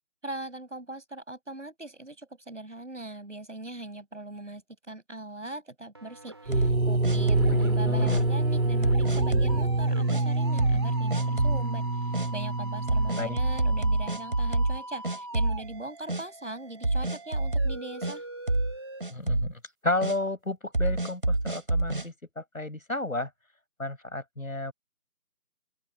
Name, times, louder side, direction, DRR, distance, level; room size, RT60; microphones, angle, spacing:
voice 1, 0.2-18.3, right 2 dB, 55° right, 7.3 m, -40 dB
sound 1, 5.9-6.7 7.1-19.0, right 2 dB, 15° right, 4.0 m, -42 dB
sound 2, 6.5-7.6 8.1-8.2 8.8-9.6 10.1-10.2 10.6-10.9 11.1-11.6 12.1-12.3 12.9-14.8 15.0-15.8 16.1-16.2 16.8-18.2 18.5-18.8 19.0-19.5 20.0-20.2 20.7-22.1, right 2 dB, 35° right, 4.2 m, -27 dB
sound 3, 6.5-14.2, right 2 dB, 70° right, 1.7 m, -27 dB
voice 2, 7.2-8.2 13.2-13.4 19.1-23.3 23.8-24.7, left 2 dB, 65° left, 6.8 m, -32 dB
open air
figure-of-eight pair, 180°, 44 cm